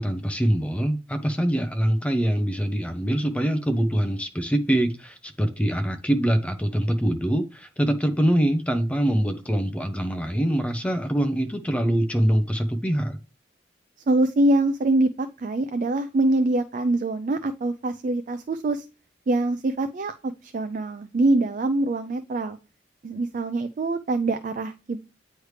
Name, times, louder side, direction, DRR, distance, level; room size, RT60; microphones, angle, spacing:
voice 1, 0.0-13.2, right 1 dB, 5° left, 0.6 m, -24 dB
voice 2, 14.1-18.8 19.3-22.6 23.0-25.0, right 2 dB, 45° right, 0.4 m, -24 dB
9.4 x 3.2 x 3.2 m
head